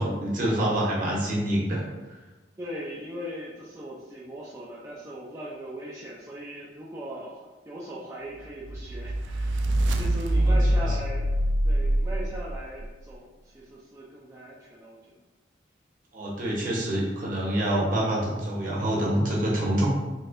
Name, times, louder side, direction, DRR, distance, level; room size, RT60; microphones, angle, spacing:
voice 1, 0.0-1.8 10.5-10.6 10.8-10.9 16.1-19.9, right 1 dB, 50° right, -4 dB, 0.9 m, -26 dB
voice 2, 2.6-11.3 11.6-15.2, equal, 15° right, -6 dB, 0.4 m, -39 dB
sound 1, 8.6-12.9, right 1 dB, 85° right, 0.3 m, -24 dB
4.0 x 2.6 x 2.5 m, 1.2 s
head